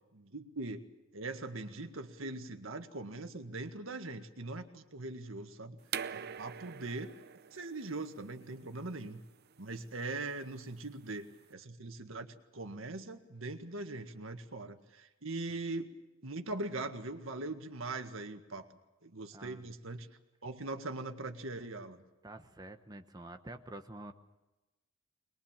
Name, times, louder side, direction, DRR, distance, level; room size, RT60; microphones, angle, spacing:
voice 1, 0.1-0.8 1.1-5.8 6.1-7.1 7.5-9.2 9.6-15.9 16.2-18.7 19.0-20.1 20.4-22.0, right 2 dB, 80° right, 7 dB, 1.8 m, -41 dB
sound 1, 5.9-11.5, right 8 dB, 55° right, 0.7 m, -45 dB
voice 2, 19.3-19.6 22.2-24.1, right 1 dB, 20° right, 6 dB, 1.1 m, -48 dB
22.5 x 21.5 x 7.4 m, 1.0 s
head